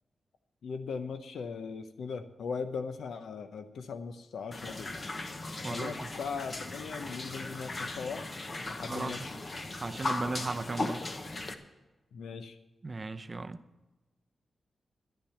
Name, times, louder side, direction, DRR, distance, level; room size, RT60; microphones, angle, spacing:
voice 1, 0.6-4.9 5.7-8.3 8.7-9.2 12.1-12.6, left 5 dB, 90° left, 0.8 m, -39 dB
sound 1, 4.5-11.5, left 2 dB, 30° left, 0.9 m, -38 dB
voice 2, 5.6-6.1 8.8-9.3 9.8-11.0 12.8-13.6, right 3 dB, 25° right, 0.6 m, -36 dB
11.5 x 10.5 x 5.7 m
wide cardioid pair, 155°, 0 cm